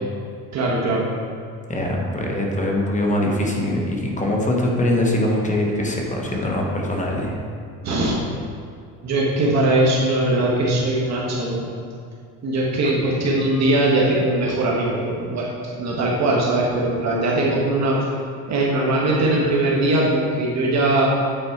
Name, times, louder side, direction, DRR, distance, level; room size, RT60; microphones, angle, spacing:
voice 1, 0.5-1.1 7.8-8.2 9.0-11.6 12.4-18.0 18.5-21.1, right 2 dB, 45° right, -4 dB, 1.4 m, -20 dB
voice 2, 1.7-7.3, left 1 dB, 20° left, -1 dB, 1.1 m, -22 dB
8.9 x 4.3 x 4.6 m, 2.3 s
cardioid pair, 115°, 36 cm